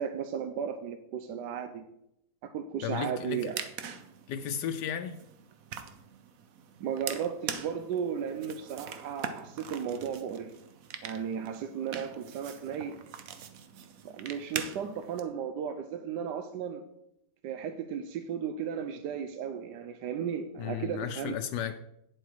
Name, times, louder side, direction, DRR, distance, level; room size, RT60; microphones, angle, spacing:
voice 1, 0.0-1.8 2.4-3.7 6.8-10.5 11.0-13.0 14.0-16.8 17.4-21.4, right 7 dB, 90° right, 9 dB, 1.3 m, -35 dB
voice 2, 2.8-3.5 4.3-5.2 20.6-21.8, left 8 dB, 80° left, 8 dB, 1.2 m, -34 dB
sound 1, 3.2-15.2, right 7 dB, 60° right, 1.1 m, -43 dB
9.0 x 7.7 x 4.8 m, 0.80 s
omnidirectional pair, 1.8 m